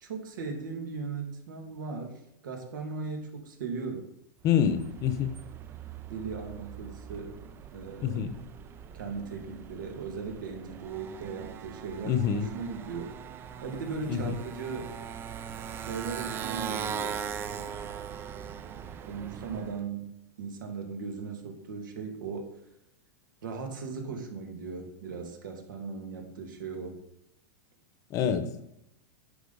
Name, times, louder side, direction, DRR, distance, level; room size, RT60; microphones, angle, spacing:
voice 1, 0.0-4.1 6.0-7.4 7.7-8.2 8.9-13.1 13.6-14.9 15.8-17.8 19.0-22.5 23.4-27.0, right 5 dB, 80° right, 3 dB, 2.3 m, -38 dB
voice 2, 4.4-5.3 8.0-8.4 12.0-12.5 14.1-14.3 28.1-28.6, left 8 dB, 30° left, 11 dB, 0.9 m, -26 dB
Motorcycle, 4.5-19.8, right 8 dB, 20° right, 0.4 m, -40 dB
10.0 x 6.3 x 4.0 m, 0.82 s
supercardioid pair, 145°, 10 cm